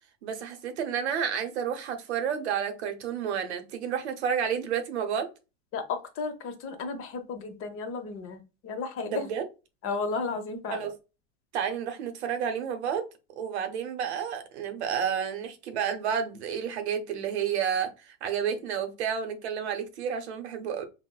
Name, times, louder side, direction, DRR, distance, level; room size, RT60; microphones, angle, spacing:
voice 1, 0.2-5.3 9.0-9.4 10.7-11.0 11.5-13.1 13.4-20.8, right 8 dB, 85° right, 0.7 m, -30 dB
voice 2, 5.7-9.3 9.8-10.9, left 4 dB, 40° left, 0.8 m, -34 dB
4.0 x 2.1 x 2.2 m
supercardioid pair, 115°, 33 cm